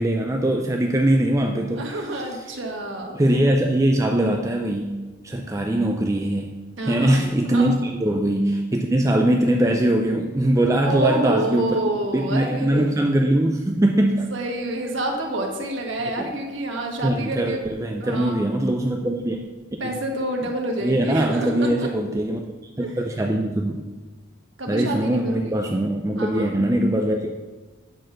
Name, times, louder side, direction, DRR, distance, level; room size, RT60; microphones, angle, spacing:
voice 1, 0.0-2.4 3.1-5.0 5.2-6.5 6.9-11.8 12.1-14.3 16.2-16.3 17.0-19.4 19.7-20.0 20.8-22.5 22.8-23.8 24.7-27.3, right 1 dB, 15° right, 2 dB, 0.4 m, -22 dB
voice 2, 1.7-3.2 6.8-7.7 10.8-12.9 14.3-17.6 18.0-18.4 19.8-21.7 22.8-23.0 24.6-25.6 26.2-26.5, right 1 dB, 75° right, 1 dB, 1.4 m, -28 dB
8.8 x 4.2 x 6.3 m, 1.3 s
head